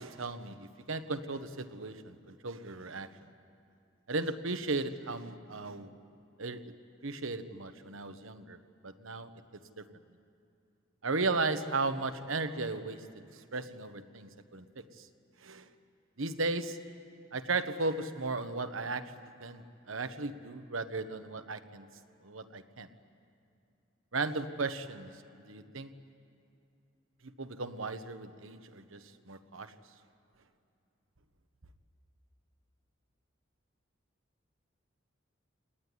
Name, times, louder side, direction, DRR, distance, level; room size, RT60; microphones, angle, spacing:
voice 1, 0.0-3.1 4.1-5.9 6.4-6.7 7.0-8.6 8.8-9.3 9.8-9.9 11.0-14.8 15.4-15.7 16.2-16.8 17.3-19.0 19.4-21.9 22.2-22.9 24.1-25.1 25.5-25.9 27.2-29.7, right 3 dB, 85° right, 9 dB, 1.2 m, -36 dB
26.5 x 19.0 x 9.9 m, 2.5 s
head